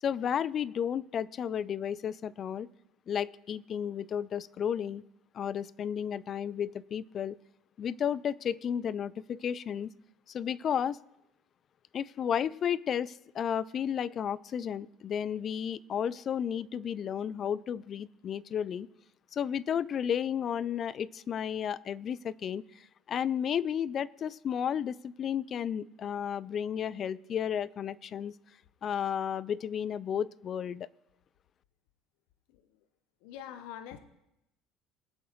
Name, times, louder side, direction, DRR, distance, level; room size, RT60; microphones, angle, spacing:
voice 1, 0.0-2.7 3.1-5.0 5.3-7.4 7.8-9.9 10.3-11.0 11.9-18.9 19.3-28.3 28.8-30.9, left 8 dB, 45° left, 21 dB, 0.4 m, -33 dB
voice 2, 33.2-34.0, left 10 dB, 70° left, 10 dB, 0.8 m, -44 dB
22.5 x 7.7 x 3.2 m, 0.88 s
hypercardioid pair, 70°, 0 cm